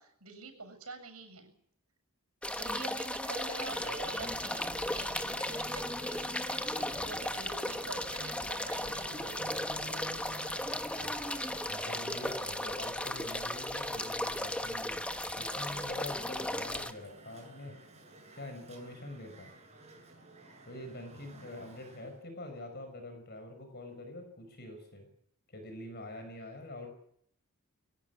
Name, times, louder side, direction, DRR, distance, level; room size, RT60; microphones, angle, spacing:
voice 1, 0.0-1.6 2.5-9.5, right 4 dB, 85° right, 7 dB, 7.2 m, -47 dB
sound 1, 2.4-16.9, left 1 dB, 5° left, 1.1 m, -36 dB
Traffic noise roadway noise, 3.5-22.2, right 2 dB, 30° right, 7.6 m, -51 dB
voice 2, 10.7-11.2 11.7-15.0 15.4-17.8 18.3-19.5 20.7-25.1 25.5-26.9, left 1 dB, 50° left, 6 dB, 5.8 m, -45 dB
23.0 x 17.0 x 9.8 m, 0.69 s
head